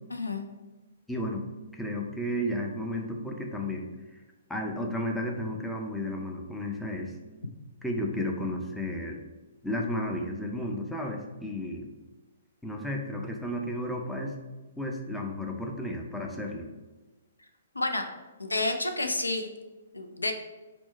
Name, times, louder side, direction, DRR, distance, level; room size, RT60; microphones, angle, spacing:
voice 1, 0.1-0.5 17.7-18.1 18.4-19.5 19.9-20.3, left 2 dB, 80° left, 6 dB, 0.4 m, -30 dB
voice 2, 1.1-1.4 1.7-3.9 4.5-7.1 7.8-9.2 9.6-11.9 12.6-14.4 14.8-16.7, left 1 dB, 5° left, 0 dB, 0.4 m, -33 dB
4.3 x 2.1 x 4.2 m, 1.2 s
figure-of-eight pair, 120°, 0 cm